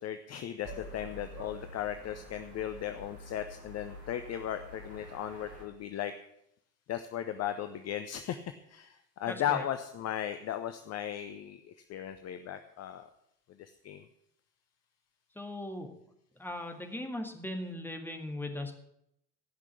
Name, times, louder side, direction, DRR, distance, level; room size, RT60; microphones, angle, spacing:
voice 1, 0.0-6.1 6.9-13.1 13.6-14.1, left 10 dB, 30° left, 9 dB, 0.8 m, -36 dB
sound 1, 0.6-5.6, equal, 75° right, 3.3 m, -48 dB
voice 2, 9.3-9.6 15.4-15.9 16.4-18.7, left 1 dB, 5° left, 4 dB, 1.9 m, -38 dB
16.0 x 6.1 x 8.2 m, 0.77 s
figure-of-eight pair, 65°, 49 cm